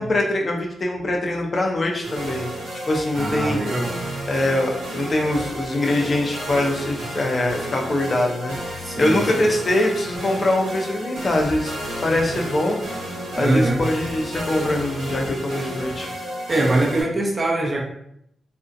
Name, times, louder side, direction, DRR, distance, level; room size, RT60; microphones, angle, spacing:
voice 1, 0.0-2.6 2.9-3.6 4.3-8.6 9.0-11.7 12.0-12.8 13.3-16.1, left 1 dB, 45° left, 1 dB, 0.5 m, -23 dB
sound 1, 2.0-17.0, equal, 90° right, 0.8 m, -32 dB
voice 2, 3.2-3.9 8.8-9.2 13.4-13.8 16.5-17.8, right 2 dB, 35° right, -1 dB, 0.6 m, -22 dB
2.5 x 2.1 x 2.5 m, 0.74 s
supercardioid pair, 55°, 0 cm